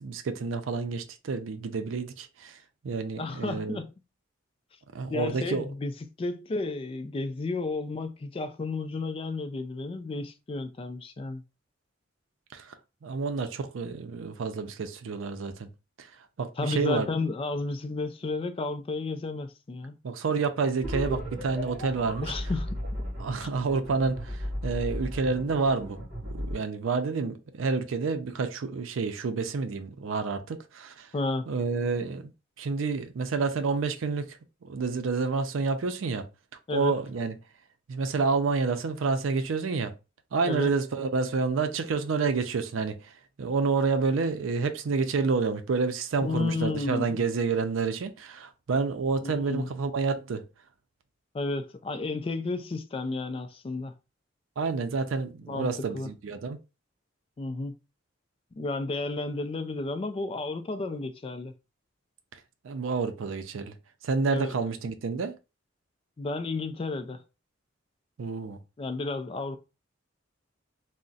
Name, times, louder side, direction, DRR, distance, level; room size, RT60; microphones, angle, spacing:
voice 1, 0.0-2.6 2.8-3.8 4.9-5.7 12.5-12.7 13.0-15.7 16.0-16.1 16.4-17.1 20.0-22.3 23.2-31.1 31.5-32.3 32.6-36.3 36.7-37.3 37.9-39.9 40.3-43.1 43.4-50.5 54.6-56.6 62.6-63.8 64.0-65.4 68.2-68.6, right 4 dB, 90° right, 0.4 m, -29 dB
voice 2, 3.2-3.9 5.1-5.9 6.2-11.4 16.6-20.0 22.2-22.8 23.4-23.5 31.1-31.5 36.7-36.9 40.4-40.7 46.2-47.2 49.2-49.7 51.3-53.9 55.5-56.1 57.4-57.7 58.6-61.5 64.3-64.5 66.2-67.2 68.8-69.6, left 3 dB, 30° left, 0.3 m, -32 dB
sound 1, 20.8-26.5, equal, 40° right, 1.2 m, -35 dB
2.4 x 2.1 x 3.9 m
head